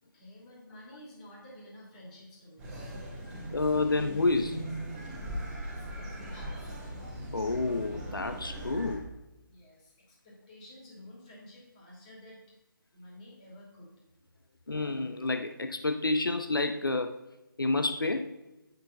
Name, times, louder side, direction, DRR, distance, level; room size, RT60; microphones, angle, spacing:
voice 1, 0.0-3.2 5.7-6.9 9.4-12.6 12.9-13.9, left 1 dB, 20° left, 2.8 m, -52 dB
sound 1, 2.6-9.0, right 1 dB, 5° right, 2.3 m, -39 dB
voice 2, 3.5-4.6 7.3-9.1 14.7-17.2 17.6-18.4, left 3 dB, 75° left, 0.6 m, -29 dB
8.8 x 6.2 x 5.2 m
figure-of-eight pair, 150°, 12 cm